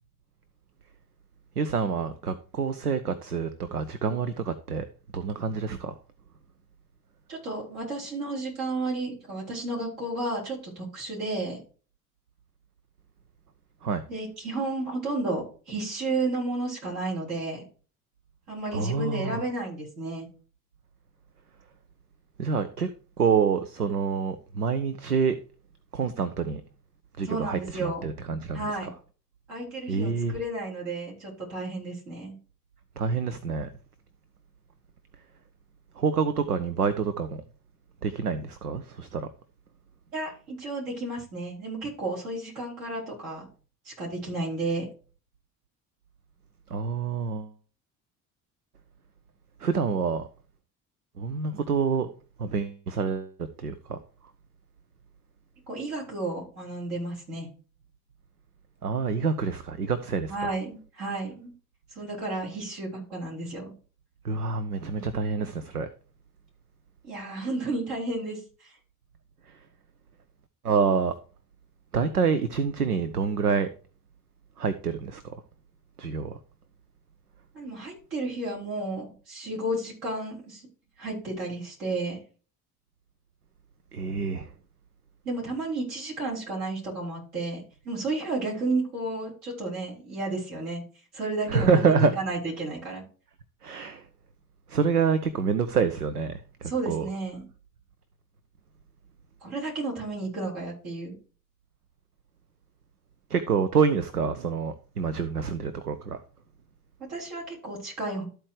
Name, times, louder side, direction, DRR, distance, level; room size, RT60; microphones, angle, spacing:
voice 1, 1.6-4.9 5.1-5.9 13.8-14.0 18.7-19.4 22.4-22.9 23.2-25.4 25.9-26.6 27.2-28.6 29.9-30.3 33.0-33.7 36.0-37.4 38.0-39.3 46.7-47.5 49.6-50.3 51.2-52.1 52.4-53.3 53.6-54.0 58.8-60.3 64.2-65.9 70.6-71.1 71.9-73.7 74.6-75.2 76.0-76.3 83.9-84.5 91.5-92.1 93.6-94.0 94.7-97.1 103.3-106.2, right 5 dB, 90° right, 0.6 m, -27 dB
voice 2, 7.3-11.6 14.1-17.6 18.5-20.3 27.2-28.0 28.5-28.9 29.5-32.3 40.1-43.5 43.8-44.9 55.7-57.5 60.3-61.5 61.9-63.7 67.0-68.8 77.5-80.7 81.0-82.2 85.2-90.8 91.1-93.0 96.6-97.4 99.4-101.1 107.0-108.2, right 2 dB, 65° right, 5.0 m, -32 dB
12.5 x 4.5 x 4.8 m
figure-of-eight pair, 55°, 44 cm